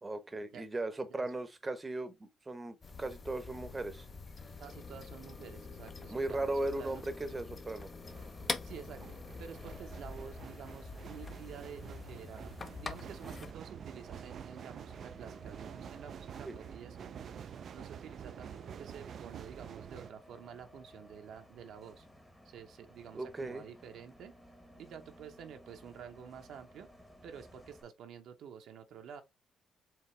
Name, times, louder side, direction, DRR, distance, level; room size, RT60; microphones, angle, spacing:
voice 1, 0.0-4.1 6.1-7.9 16.4-16.5 23.1-23.6, right 2 dB, 25° right, 0.8 m, -37 dB
sound 1, 2.8-13.5, left 4 dB, 35° left, 0.7 m, -45 dB
voice 2, 4.6-7.2 8.6-9.1 9.4-17.1 17.7-22.1 22.4-24.3 24.8-26.9 27.2-29.2, right 8 dB, 75° right, 0.8 m, -50 dB
sound 2, 7.9-20.1, right 8 dB, 60° right, 0.3 m, -48 dB
Bus, 8.0-27.8, equal, 5° left, 1.0 m, -58 dB
4.7 x 3.0 x 3.1 m
cardioid pair, 90°, 0 cm